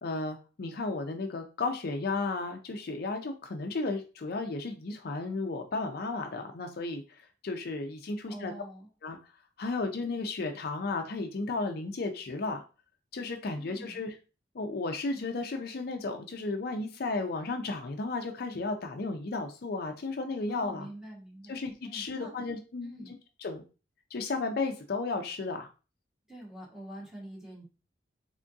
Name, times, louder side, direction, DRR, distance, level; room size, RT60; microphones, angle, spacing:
voice 1, 0.0-8.5 9.0-9.2 9.6-12.6 13.1-14.2 14.5-20.9 21.5-23.6 24.1-25.7, left 3 dB, 55° left, 5 dB, 0.5 m, -34 dB
voice 2, 8.3-8.9 13.6-14.0 20.5-22.3 22.8-23.1 26.3-27.6, right 1 dB, 5° right, -4 dB, 1.4 m, -46 dB
3.5 x 3.5 x 2.6 m, 0.33 s
head